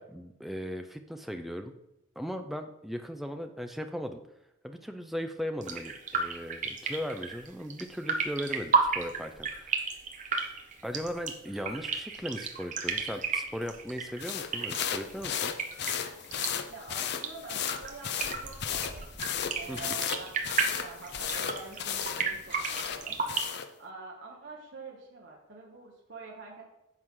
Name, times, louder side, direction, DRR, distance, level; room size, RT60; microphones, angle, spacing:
voice 1, 0.0-1.7 2.2-4.2 4.6-9.8 10.8-15.5 19.7-20.0, equal, ahead, 6 dB, 0.5 m, -38 dB
sound 1, 5.6-23.4, right 4 dB, 35° right, 0.9 m, -33 dB
sound 2, 14.2-23.7, left 8 dB, 50° left, 0.5 m, -35 dB
voice 2, 16.7-19.1 19.6-20.3 20.8-26.6, right 4 dB, 55° right, -4 dB, 1.3 m, -46 dB
9.6 x 6.3 x 3.8 m, 0.90 s
head